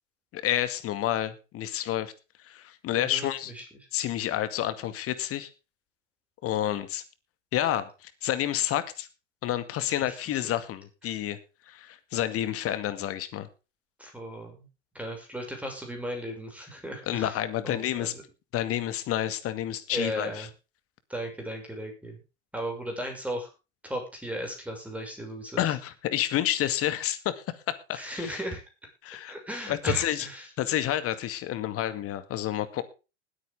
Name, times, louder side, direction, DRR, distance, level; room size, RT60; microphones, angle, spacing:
voice 1, 0.3-2.1 2.4-3.5 3.9-5.5 6.4-7.0 7.5-9.1 9.4-11.4 11.7-13.5 17.1-18.1 18.5-20.5 25.6-27.4 27.9-28.3 29.0-29.3 29.7-30.3 30.6-32.8, left 12 dB, 40° left, 12 dB, 2.1 m, -29 dB
voice 2, 2.9-3.3 3.5-3.6 10.0-10.4 14.0-14.7 14.9-17.4 17.6-18.2 19.9-20.5 21.1-22.2 22.5-23.5 23.8-25.6 27.9-28.6 29.3-30.5, right 1 dB, 5° right, 3 dB, 6.4 m, -36 dB
20.0 x 8.9 x 3.7 m, 0.31 s
hypercardioid pair, 90°, 35 cm